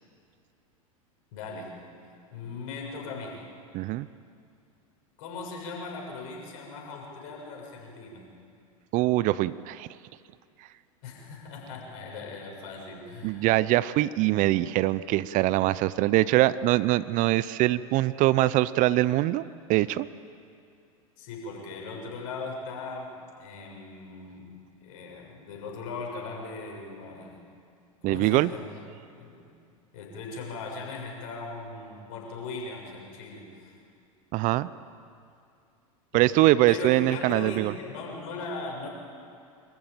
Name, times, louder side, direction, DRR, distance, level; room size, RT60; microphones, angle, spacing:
voice 1, 1.3-1.8 2.3-3.4 5.2-8.3 11.0-13.5 21.2-27.4 28.0-28.7 29.1-29.4 29.9-33.7 36.1-36.3 36.7-38.9, left 3 dB, 60° left, -1 dB, 6.7 m, -39 dB
voice 2, 3.7-4.1 8.9-9.9 13.2-19.4 19.7-20.1 28.0-28.5 34.3-34.7 36.1-37.7, right 16 dB, 45° right, 18 dB, 0.6 m, -23 dB
25.0 x 14.5 x 9.0 m, 2.5 s
hypercardioid pair, 90°, 18 cm